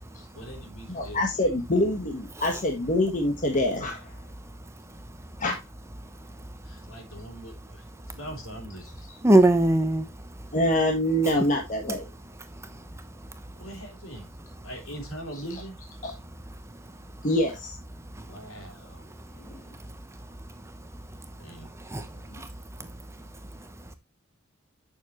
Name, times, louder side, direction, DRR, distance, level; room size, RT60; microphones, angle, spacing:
voice 1, 0.3-1.5 6.6-9.1 13.6-14.3 14.6-15.8 18.3-19.1 21.4-21.7, right 1 dB, 65° left, 3.4 m, -42 dB
voice 2, 0.9-4.1 5.4-5.6 10.5-12.1 16.0-16.1 17.2-17.8 19.4-19.6 22.3-22.4, left 1 dB, 40° left, 1.3 m, -25 dB
voice 3, 4.9-5.4 6.0-6.9 8.1-8.2 9.2-10.5 12.4-13.5 16.5-17.1 18.0-18.5 18.8-24.0, right 1 dB, 15° right, 0.9 m, -28 dB
9.3 x 6.8 x 3.0 m
head